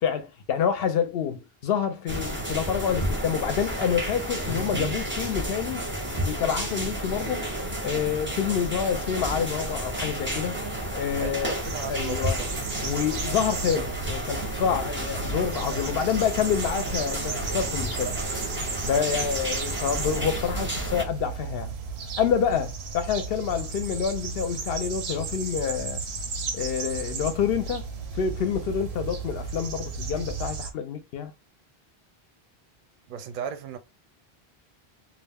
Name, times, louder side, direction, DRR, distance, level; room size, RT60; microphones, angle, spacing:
voice 1, 0.0-5.9 6.2-7.5 7.8-10.6 10.9-11.5 11.9-12.4 12.8-18.1 18.9-21.7 22.2-26.0 26.5-31.3, left 7 dB, 70° left, 0.7 m, -27 dB
sound 1, 2.1-21.0, right 1 dB, 15° right, 0.5 m, -31 dB
voice 2, 11.2-12.5 33.1-33.8, right 7 dB, 60° right, 0.6 m, -36 dB
sound 2, 11.6-30.7, right 5 dB, 85° right, 0.9 m, -34 dB
2.4 x 2.1 x 3.3 m
omnidirectional pair, 1.1 m